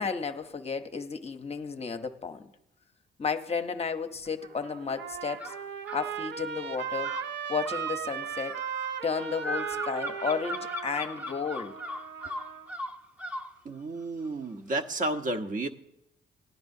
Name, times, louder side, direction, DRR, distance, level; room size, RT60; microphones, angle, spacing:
voice 1, 0.0-2.5 3.2-5.5 5.9-7.1 7.5-8.6 9.0-11.8, left 5 dB, 30° left, 0.7 m, -33 dB
Trumpet, 4.2-12.7, right 8 dB, 65° right, 0.7 m, -37 dB
sound 1, 5.4-6.1 7.0-13.5, left 1 dB, 10° right, 0.8 m, -38 dB
voice 2, 13.6-15.7, right 2 dB, 40° right, 0.9 m, -31 dB
18.5 x 10.5 x 2.7 m
cardioid pair, 90°, 20 cm